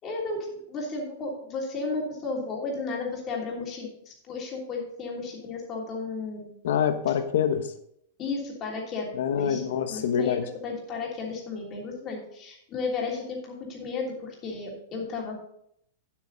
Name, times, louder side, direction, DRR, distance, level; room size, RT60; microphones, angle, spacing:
voice 1, 0.0-6.6 8.2-9.6 9.9-15.3, left 3 dB, 25° left, -2 dB, 3.1 m, -33 dB
voice 2, 6.6-7.7 9.1-10.4, left 8 dB, 70° left, 9 dB, 1.2 m, -25 dB
9.2 x 8.2 x 4.0 m, 0.71 s
supercardioid pair, 155°, 0 cm